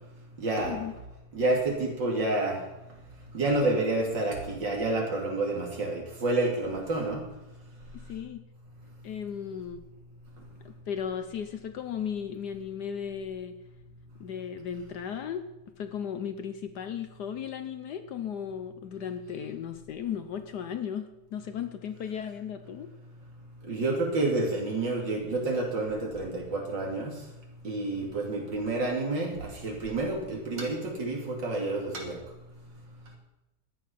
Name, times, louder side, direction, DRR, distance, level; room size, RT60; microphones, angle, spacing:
voice 1, 0.4-0.8 1.3-2.6 3.3-7.2 23.7-27.1 27.6-32.2, right 2 dB, 65° right, 0 dB, 3.3 m, -29 dB
voice 2, 7.9-8.4 9.0-9.8 10.6-13.5 14.2-15.4 15.8-22.9, left 8 dB, 65° left, 9 dB, 1.2 m, -36 dB
13.5 x 9.7 x 5.8 m, 0.96 s
omnidirectional pair, 2.1 m